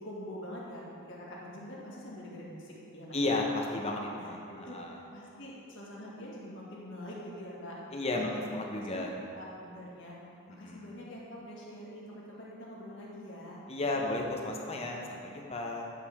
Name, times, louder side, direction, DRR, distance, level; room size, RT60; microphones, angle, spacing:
voice 1, 0.0-3.4 4.2-7.8 8.1-8.4 8.9-9.1 9.3-10.2 10.5-13.6, equal, 60° left, -5 dB, 2.0 m, -45 dB
voice 2, 3.1-5.0 7.9-9.1 10.5-10.9 13.7-15.9, left 2 dB, 30° left, 0 dB, 0.9 m, -33 dB
10.0 x 7.4 x 3.6 m, 2.6 s
head